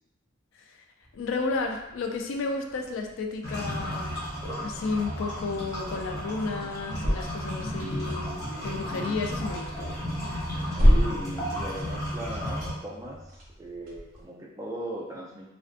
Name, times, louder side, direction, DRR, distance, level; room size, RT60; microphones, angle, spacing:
sound 1, 1.0-14.2, equal, 40° right, 0.6 m, -31 dB
voice 1, 1.1-4.2 4.6-9.9, left 3 dB, 65° left, 3 dB, 0.3 m, -32 dB
sound 2, 3.4-12.7, equal, 15° left, 0.7 m, -33 dB
voice 2, 10.8-15.5, right 1 dB, 15° right, -3 dB, 0.3 m, -38 dB
2.4 x 2.3 x 2.4 m, 0.90 s
head